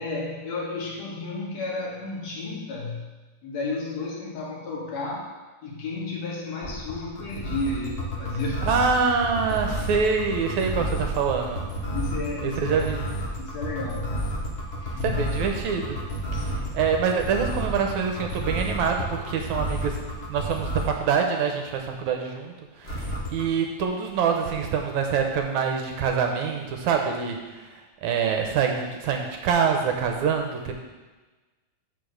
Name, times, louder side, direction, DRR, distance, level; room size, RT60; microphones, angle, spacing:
voice 1, 0.0-3.1 3.4-5.3 5.6-8.7 11.9-12.9 13.4-14.3 14.8-15.3 16.3-16.8, left 3 dB, 65° left, -2 dB, 2.5 m, -32 dB
sound 1, 6.6-21.0 22.8-23.4, equal, 80° left, 0.5 m, -30 dB
voice 2, 8.6-11.6 12.4-13.1 15.0-16.0 16.3-20.0 20.3-27.7 28.0-30.7, right 6 dB, 75° right, 3 dB, 2.1 m, -25 dB
6.9 x 5.5 x 6.4 m, 1.2 s
omnidirectional pair, 3.5 m